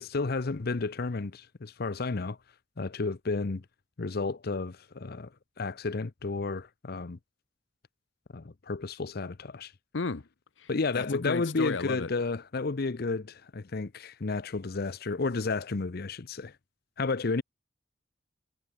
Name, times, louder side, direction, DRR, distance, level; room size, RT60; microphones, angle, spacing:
voice 1, 0.0-2.4 2.8-3.6 4.0-5.3 5.6-7.2 8.3-9.7 10.7-16.5 17.0-17.4, left 3 dB, 55° left, 0.7 m, -32 dB
voice 2, 9.9-10.3 10.6-12.1, left 4 dB, 90° left, 0.9 m, -34 dB
head